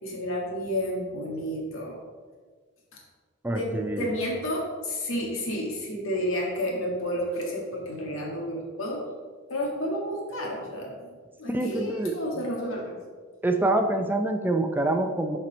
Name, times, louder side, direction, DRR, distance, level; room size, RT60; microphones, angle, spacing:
voice 1, 0.0-2.0 2.9-3.0 3.5-9.1 9.5-11.1 11.4-13.0, equal, 85° left, -1 dB, 1.9 m, -31 dB
voice 2, 3.4-4.1 11.5-12.2 13.4-15.4, right 2 dB, 10° right, 5 dB, 0.5 m, -26 dB
7.4 x 4.4 x 5.1 m, 1.5 s
head